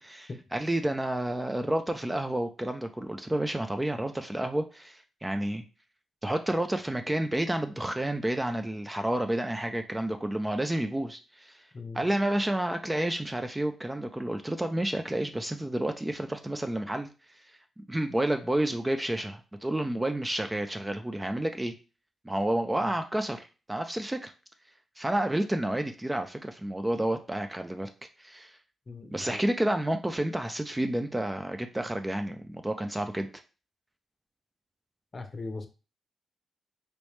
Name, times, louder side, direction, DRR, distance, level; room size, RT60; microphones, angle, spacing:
voice 1, 0.0-5.6 6.2-11.6 11.9-17.1 17.8-21.7 22.2-24.3 25.0-27.9 28.2-28.6 29.1-33.3, right 1 dB, 15° right, 7 dB, 0.4 m, -30 dB
voice 2, 11.7-12.1 22.8-22.9 28.9-29.4 35.1-35.7, left 3 dB, 40° left, 7 dB, 0.7 m, -39 dB
3.1 x 3.1 x 3.1 m, 0.33 s
cardioid pair, 75°, 0 cm